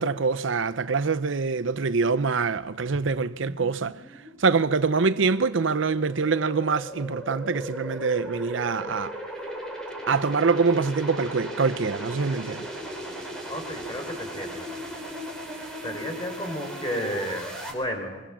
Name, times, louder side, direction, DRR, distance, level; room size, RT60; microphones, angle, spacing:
voice 1, 0.0-3.9 4.4-9.1 10.1-12.7, right 4 dB, 75° right, 0.7 m, -24 dB
sound 1, 2.9-17.7, equal, 5° left, 4.7 m, -37 dB
voice 2, 13.5-14.6 15.8-18.2, equal, 20° left, 4.9 m, -32 dB
24.0 x 22.5 x 7.4 m
head